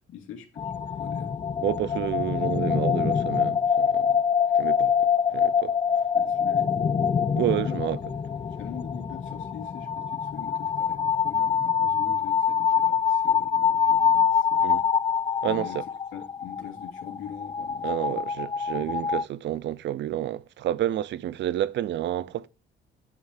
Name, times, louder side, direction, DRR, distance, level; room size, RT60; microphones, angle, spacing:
voice 1, 0.1-0.7 1.0-1.4 6.1-7.1 7.6-7.9 8.4-14.7 15.4-15.8 16.1-18.2 18.7-19.0, left 8 dB, 85° left, 2.6 m, -42 dB
sound 1, 0.6-19.2, left 7 dB, 25° left, 0.4 m, -25 dB
voice 2, 1.6-4.2 4.6-4.9 5.3-5.7 7.4-8.0 14.6-14.8 15.4-15.8 17.8-22.5, right 12 dB, 65° right, 0.5 m, -29 dB
9.5 x 3.2 x 6.5 m
cardioid pair, 90°, 20 cm